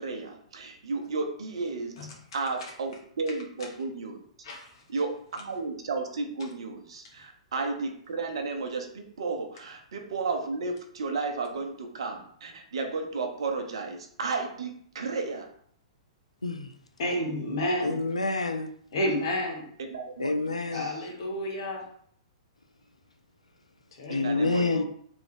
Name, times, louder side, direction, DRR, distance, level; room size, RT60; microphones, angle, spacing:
voice 1, 0.0-1.9 2.3-4.2 4.9-15.5 19.9-20.3 20.7-21.0 24.1-24.8, right 4 dB, 60° right, 0.8 m, -33 dB
voice 2, 16.4-16.7 17.8-18.7 20.2-20.9 24.1-24.8, left 3 dB, 80° left, 0.4 m, -28 dB
voice 3, 17.0-18.0 18.9-19.7 20.7-21.8 24.0-24.8, left 1 dB, 50° left, 1.2 m, -31 dB
3.6 x 3.0 x 3.4 m
figure-of-eight pair, 110°, 3 cm